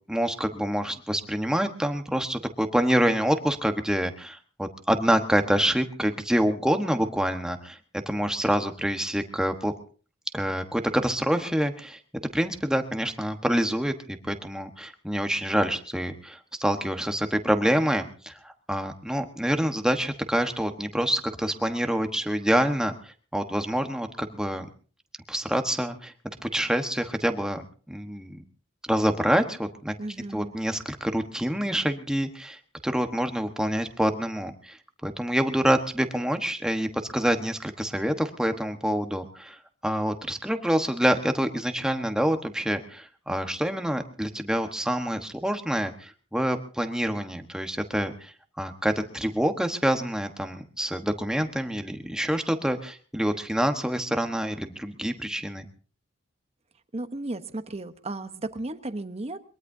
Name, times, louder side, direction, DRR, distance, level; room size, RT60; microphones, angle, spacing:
voice 1, 0.1-9.7 10.3-24.6 25.3-26.1 26.4-28.4 28.8-29.9 30.3-55.7, equal, 5° right, 6 dB, 1.3 m, -27 dB
voice 2, 30.0-30.5 56.9-59.4, right 2 dB, 35° right, 10 dB, 1.0 m, -34 dB
22.5 x 22.0 x 2.7 m, 0.40 s
head